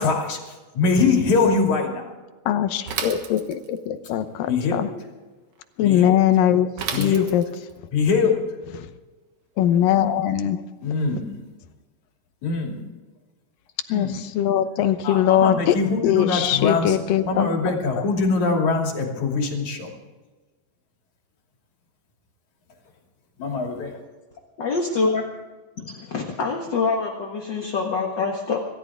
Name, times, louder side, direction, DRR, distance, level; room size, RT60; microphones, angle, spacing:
voice 1, 0.0-2.1 4.5-4.9 5.8-6.2 6.9-7.3 7.9-8.4 10.8-11.3 12.4-12.8 13.9-14.2 15.0-17.0 17.2-19.9 23.4-24.0, left 4 dB, 60° left, 1 dB, 4.0 m, -23 dB
voice 2, 2.5-4.9 5.8-6.7 7.0-7.4 8.8-8.9 9.6-10.6 13.9-15.8 16.0-17.7, left 10 dB, 85° left, 10 dB, 2.7 m, -21 dB
Bicycle / Mechanisms, 2.9-3.9 6.8-7.7, right 7 dB, 65° right, 2.9 m, -31 dB
voice 3, 24.6-25.3 25.8-28.6, left 4 dB, 45° left, 1 dB, 1.7 m, -25 dB
26.0 x 13.5 x 3.6 m, 1.3 s
omnidirectional pair, 3.8 m